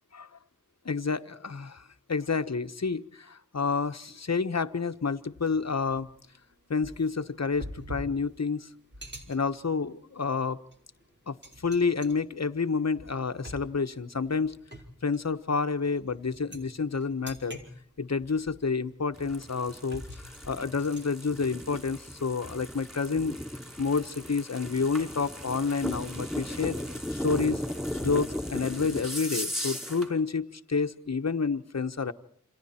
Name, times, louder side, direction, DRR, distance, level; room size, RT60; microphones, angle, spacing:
voice 1, 0.8-6.1 6.7-8.7 9.3-10.6 11.3-11.4 11.6-14.6 15.0-17.6 18.0-23.4 23.8-26.8 27.2-27.6 28.0-32.1, left 4 dB, 55° left, 9 dB, 1.3 m, -29 dB
sound 1, 3.9-4.2 4.6-4.7 5.4-22.6, equal, 35° right, 4.5 m, -47 dB
sound 2, 19.1-30.1, left 1 dB, ahead, 5.3 m, -36 dB
29.0 x 27.5 x 4.4 m, 0.65 s
wide cardioid pair, 65°, 31 cm